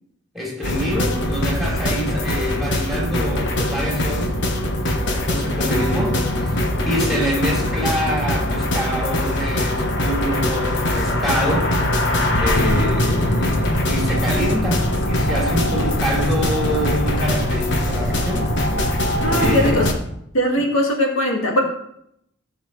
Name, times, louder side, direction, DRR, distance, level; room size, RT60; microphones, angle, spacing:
voice 1, 0.3-4.4 5.1-11.8 12.4-18.5 19.2-19.9 20.6-20.7, equal, ahead, -4 dB, 3.4 m, -26 dB
sound 1, 0.6-19.9, left 1 dB, 60° left, 1.3 m, -21 dB
voice 2, 19.2-19.9 20.3-21.6, equal, 80° left, 0 dB, 2.1 m, -20 dB
15.5 x 7.3 x 3.3 m, 0.75 s
head